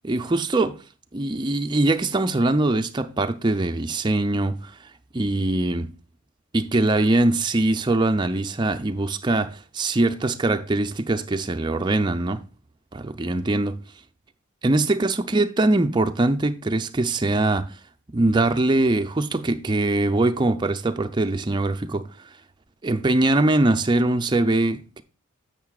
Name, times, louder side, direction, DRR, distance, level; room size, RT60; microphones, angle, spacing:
voice 1, 0.0-0.8 1.1-4.7 5.1-5.9 6.5-12.4 12.9-13.8 14.6-17.7 18.1-22.1 22.8-25.0, right 2 dB, 20° right, 0.4 m, -22 dB
10.5 x 7.3 x 2.3 m
head